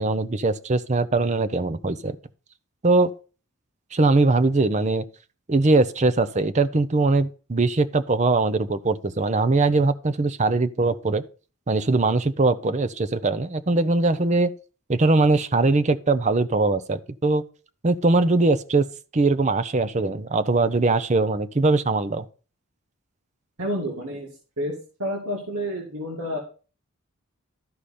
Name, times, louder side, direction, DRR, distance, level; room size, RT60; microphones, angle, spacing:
voice 1, 0.0-2.2 2.8-3.1 3.9-5.0 5.5-11.2 11.7-14.5 14.9-17.4 17.8-18.9 19.1-22.2, right 3 dB, 30° right, 0.6 m, -21 dB
voice 2, 23.6-24.3 24.6-26.4, equal, 80° right, 2.2 m, -29 dB
12.5 x 5.0 x 4.2 m
head